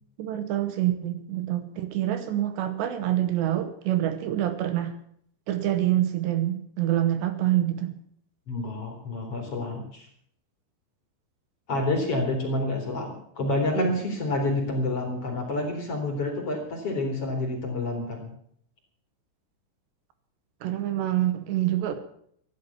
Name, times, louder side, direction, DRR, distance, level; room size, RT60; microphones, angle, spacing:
voice 1, 0.2-5.0 5.5-7.9 11.7-11.8 13.7-14.0 20.6-22.0, right 13 dB, 75° right, 10 dB, 3.1 m, -26 dB
voice 2, 8.5-10.1 11.7-18.3, left 2 dB, 35° left, 2 dB, 3.4 m, -28 dB
15.0 x 11.0 x 7.1 m, 0.66 s
omnidirectional pair, 5.3 m